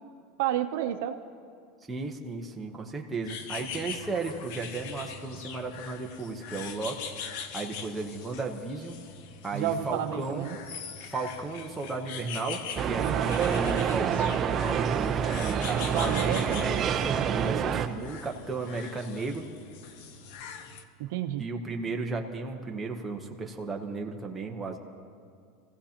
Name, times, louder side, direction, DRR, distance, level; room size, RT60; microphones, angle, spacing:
voice 1, 0.4-1.1 9.5-10.6 13.0-13.3 15.8-16.7 21.0-21.4, right 11 dB, 70° right, 6 dB, 0.7 m, -30 dB
voice 2, 1.9-7.0 7.5-9.0 9.4-10.5 11.1-19.5 21.4-24.8, right 3 dB, 10° right, 0 dB, 1.0 m, -34 dB
sound 1, 3.2-20.8, left 6 dB, 60° left, 0.8 m, -42 dB
sound 2, 12.8-17.9, right 8 dB, 25° right, 0.5 m, -27 dB
25.5 x 15.5 x 2.9 m, 2.2 s
supercardioid pair, 160°, 0 cm